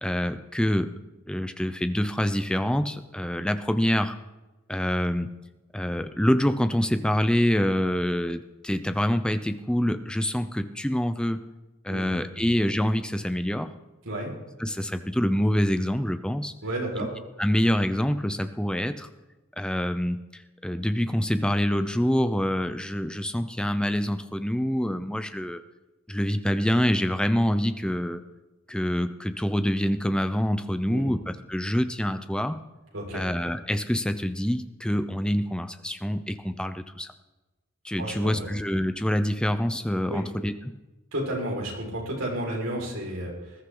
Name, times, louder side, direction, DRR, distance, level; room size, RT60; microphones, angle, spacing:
voice 1, 0.0-0.9 1.3-4.2 4.7-5.3 5.7-11.4 11.8-13.7 14.6-16.5 17.0-17.1 17.4-19.1 19.6-25.6 26.1-28.2 28.7-32.6 33.1-37.1 37.8-40.8, equal, 5° left, 9 dB, 0.7 m, -26 dB
voice 2, 16.6-17.1 30.9-31.1 32.9-33.2 38.0-38.5 40.1-40.2 41.1-43.6, right 1 dB, 75° right, -2 dB, 5.3 m, -32 dB
20.5 x 13.5 x 3.9 m, 1.1 s
head